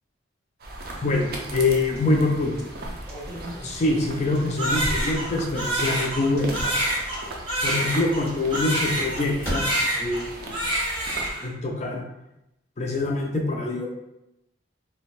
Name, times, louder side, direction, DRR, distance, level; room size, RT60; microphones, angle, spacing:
sound 1, 0.6-11.3, right 2 dB, 50° right, 0.4 m, -38 dB
voice 1, 1.0-2.7 3.6-6.6 7.6-9.6 10.0-10.6 11.4-12.0 12.8-13.9, left 2 dB, 35° left, 0 dB, 0.4 m, -25 dB
sound 2, 2.8-5.8 6.2-7.5 8.3-10.5 10.8-10.9, equal, 15° left, 1.2 m, -36 dB
Crying sobbing, 4.6-9.3 9.5-10.3 10.5-11.5, right 1 dB, 25° right, 0.8 m, -27 dB
2.5 x 2.1 x 3.1 m, 0.90 s
head